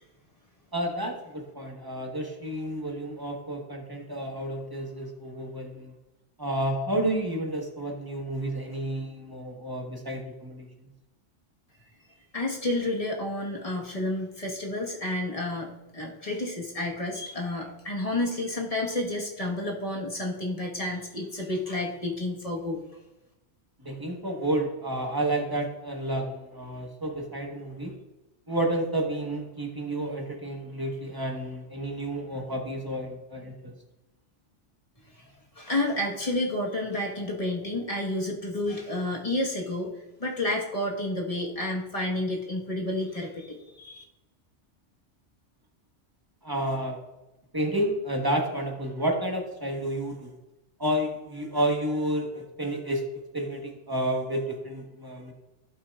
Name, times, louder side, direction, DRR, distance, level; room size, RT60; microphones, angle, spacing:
voice 1, 0.7-5.9 6.4-10.7 23.8-27.9 28.5-33.7 46.4-47.0 47.5-50.3 50.8-53.1 53.3-55.3, right 1 dB, 20° right, 1 dB, 1.3 m, -30 dB
voice 2, 12.3-22.8 35.2-35.3 35.5-39.9 40.2-44.0, left 1 dB, 30° left, -1 dB, 1.5 m, -30 dB
16.0 x 5.8 x 2.4 m, 0.98 s
omnidirectional pair, 1.3 m